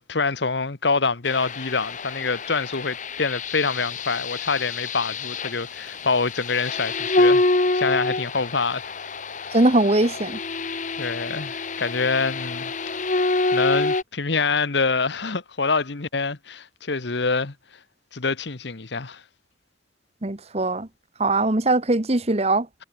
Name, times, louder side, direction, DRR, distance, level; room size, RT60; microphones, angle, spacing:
voice 1, 0.0-7.4 7.7-8.9 9.4-9.6 11.0-12.7 13.5-17.5 18.1-19.2, left 4 dB, 65° left, 1.2 m, -25 dB
sound 1, 1.2-14.0, left 2 dB, 40° left, 1.4 m, -26 dB
voice 2, 9.5-10.4 20.2-20.9 21.2-22.7, right 2 dB, 35° right, 1.2 m, -21 dB
head